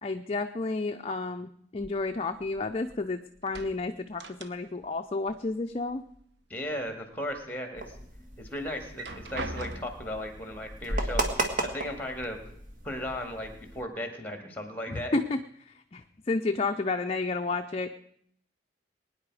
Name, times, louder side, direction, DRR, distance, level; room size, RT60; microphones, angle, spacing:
voice 1, 0.0-6.0 14.9-15.4 15.7-17.9, left 3 dB, 30° left, 6 dB, 0.5 m, -31 dB
sound 1, 1.8-3.0 3.3-5.0 5.2-6.2 6.6-7.4 7.9-8.0 8.8-10.2 11.1-11.2 11.6-12.3, right 2 dB, 60° right, 0.9 m, -42 dB
voice 2, 6.5-8.0 8.4-12.4 12.8-15.2, left 1 dB, 10° left, 5 dB, 2.0 m, -36 dB
sound 2, 7.8-13.8, right 1 dB, 40° right, 1.7 m, -35 dB
21.5 x 9.8 x 4.8 m, 0.68 s
head